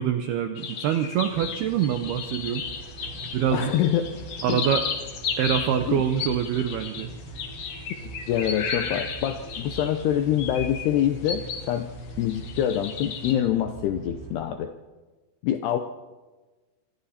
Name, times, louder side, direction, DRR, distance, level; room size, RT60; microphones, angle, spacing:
voice 1, 0.0-2.7 3.3-3.7 4.4-4.8 5.4-7.1, right 9 dB, 80° right, 7 dB, 2.3 m, -25 dB
sound 1, 0.6-11.7 12.1-13.3, left 6 dB, 50° left, 2.7 m, -34 dB
sound 2, 1.3-14.4, right 2 dB, 35° right, 5.2 m, -42 dB
voice 2, 3.5-4.1 4.5-4.6 5.9-6.0 8.0-11.9 12.2-14.7 15.4-15.8, left 11 dB, 80° left, 7 dB, 2.4 m, -25 dB
26.5 x 25.0 x 4.3 m, 1.3 s
omnidirectional pair, 5.7 m